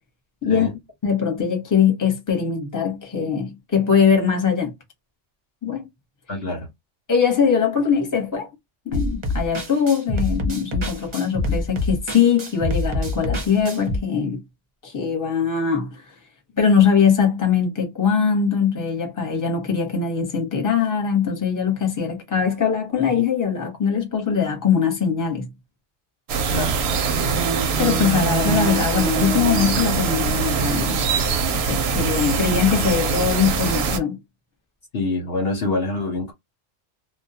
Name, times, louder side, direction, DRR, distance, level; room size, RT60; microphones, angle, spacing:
voice 1, 1.0-4.7 5.6-5.9 7.1-8.5 8.8-14.4 14.8-16.2 16.6-25.5 27.8-31.0 31.5-34.2, left 7 dB, 20° left, 0.8 m, -21 dB
voice 2, 6.3-6.7 26.5-26.8 34.9-36.3, left 2 dB, 60° left, 0.9 m, -25 dB
sound 1, 8.9-14.0, left 1 dB, 35° right, 0.5 m, -26 dB
sound 2, 26.3-34.0, right 5 dB, 65° right, 0.8 m, -22 dB
2.2 x 2.2 x 2.7 m
omnidirectional pair, 1.2 m